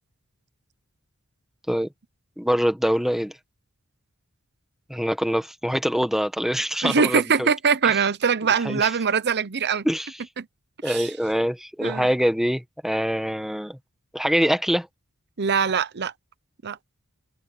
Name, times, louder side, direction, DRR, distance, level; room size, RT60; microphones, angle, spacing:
voice 1, 2.4-3.3 4.9-7.5 8.6-8.9 9.8-10.2 10.8-13.8 14.1-14.9, equal, ahead, 1.6 m, -24 dB
voice 2, 6.8-9.9 10.4-10.5 10.8-11.1 11.8-12.1 15.4-16.1 16.6-16.8, right 6 dB, 50° right, 0.8 m, -22 dB
open air
head